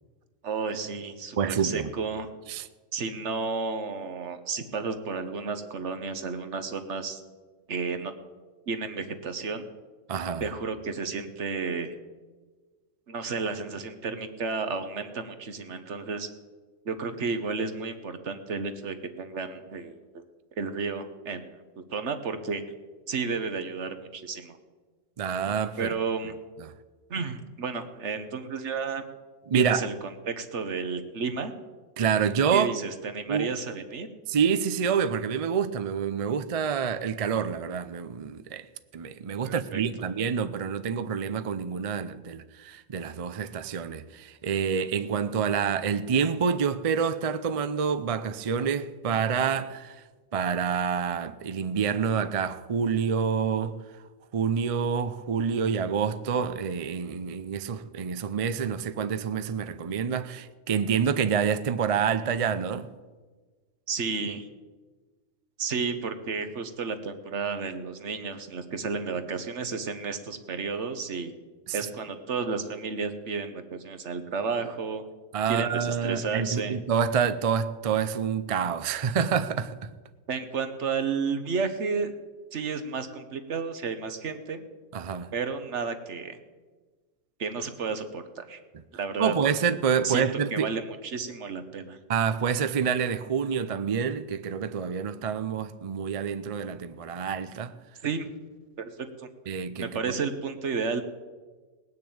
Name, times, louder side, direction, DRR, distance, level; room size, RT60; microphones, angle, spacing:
voice 1, 0.4-2.3 2.9-7.2 7.7-8.1 8.7-9.7 10.4-12.0 13.1-16.3 16.8-20.2 20.6-21.6 21.9-22.6 23.1-24.6 25.8-26.3 27.1-29.0 29.5-31.5 32.5-34.1 39.4-39.8 63.9-64.5 65.6-71.3 71.7-75.0 75.4-76.8 80.3-82.1 82.5-84.6 85.3-86.4 87.4-88.6 88.9-89.3 90.0-92.0 98.0-98.3 98.8-99.3 99.8-101.0, right 5 dB, 65° right, 1.4 m, -32 dB
voice 2, 1.4-1.9 2.5-2.7 10.1-10.5 25.2-25.9 26.6-26.7 29.5-29.9 32.0-32.7 33.3-33.5 34.3-38.7 38.9-50.0 50.3-53.8 54.3-62.9 71.7-71.8 75.3-79.9 84.9-85.3 89.2-90.7 92.1-97.7 99.5-100.1, right 7 dB, 45° right, 0.4 m, -27 dB
19.0 x 6.6 x 8.6 m
omnidirectional pair, 1.3 m